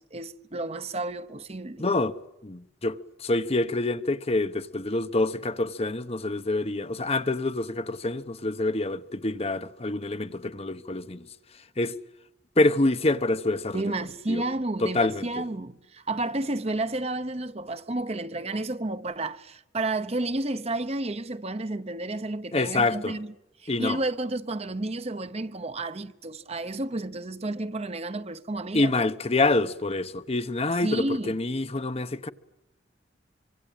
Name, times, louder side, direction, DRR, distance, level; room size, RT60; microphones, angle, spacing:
voice 1, 0.0-1.9 13.7-23.3 23.6-29.1 30.8-31.4, right 2 dB, 35° right, 1.0 m, -31 dB
voice 2, 1.8-2.1 2.4-11.3 11.8-11.9 12.6-13.8 14.3-14.4 14.8-15.3 22.5-23.2 23.7-24.0 28.7-32.3, left 2 dB, 35° left, 0.9 m, -26 dB
25.5 x 25.0 x 8.9 m
head